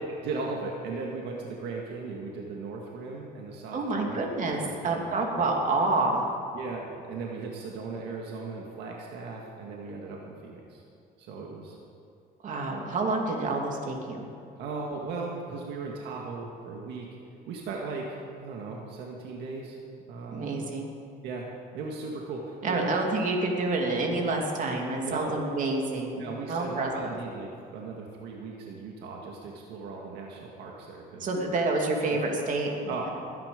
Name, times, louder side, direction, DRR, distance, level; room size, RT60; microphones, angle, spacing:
voice 1, 0.2-5.2 6.5-10.8 11.2-11.8 14.6-17.1 17.5-19.8 20.1-20.5 21.2-21.5 21.7-22.9 25.0-25.4 26.2-31.3 32.9-33.1, right 4 dB, 85° right, -1 dB, 1.8 m, -37 dB
voice 2, 3.7-6.3 12.4-14.3 20.3-20.9 22.6-27.1 31.2-32.7 33.0-33.1, right 2 dB, 50° right, 1 dB, 2.7 m, -28 dB
20.5 x 10.5 x 5.2 m, 2.5 s
cardioid pair, 110°, 17 cm